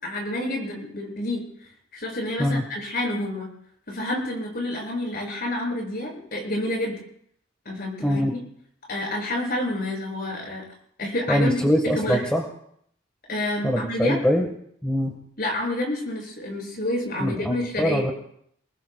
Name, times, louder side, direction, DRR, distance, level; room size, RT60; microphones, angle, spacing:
voice 1, 0.0-1.5 1.9-3.5 3.9-7.0 7.7-8.4 8.9-10.6 11.0-12.2 13.3-14.2 15.4-18.0, left 1 dB, 50° left, 0 dB, 7.0 m, -28 dB
voice 2, 8.0-8.3 11.3-12.4 13.6-14.5 14.8-15.2 17.2-18.1, equal, 5° left, 1 dB, 1.5 m, -23 dB
28.5 x 20.0 x 2.3 m, 0.68 s
head